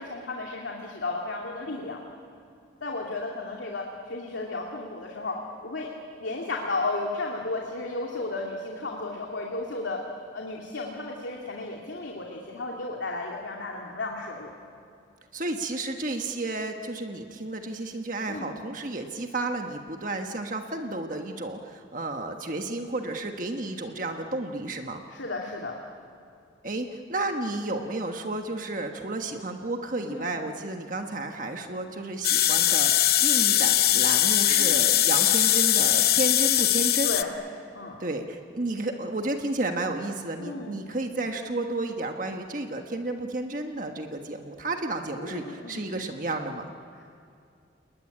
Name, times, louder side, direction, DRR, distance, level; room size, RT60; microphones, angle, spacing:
voice 1, 0.0-2.0 2.8-5.9 6.2-10.0 10.3-14.5 18.3-18.5 25.1-25.8 30.1-30.3 34.5-34.9 37.0-37.4 37.7-38.0 40.4-40.8 45.2-45.8 47.0-47.1, left 2 dB, 80° left, -1 dB, 2.6 m, -34 dB
voice 2, 15.3-25.0 26.6-37.2 38.0-46.7, right 2 dB, 45° right, 4 dB, 1.4 m, -32 dB
sound 1, 32.2-37.2, left 12 dB, 55° left, 0.9 m, -21 dB
30.0 x 20.0 x 9.9 m, 2.4 s
head